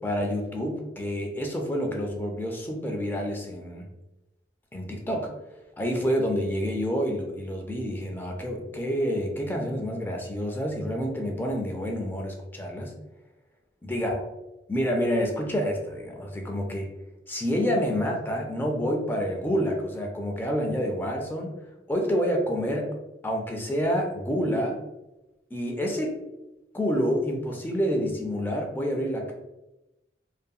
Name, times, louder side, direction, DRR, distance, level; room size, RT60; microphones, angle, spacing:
voice 1, 0.0-3.9 4.7-5.3 5.8-12.9 13.8-14.2 14.7-16.9 17.3-21.5 21.9-22.9 23.2-24.8 25.5-26.2 26.7-29.3, equal, 10° left, 1 dB, 0.3 m, -28 dB
2.7 x 2.5 x 2.2 m, 0.98 s
head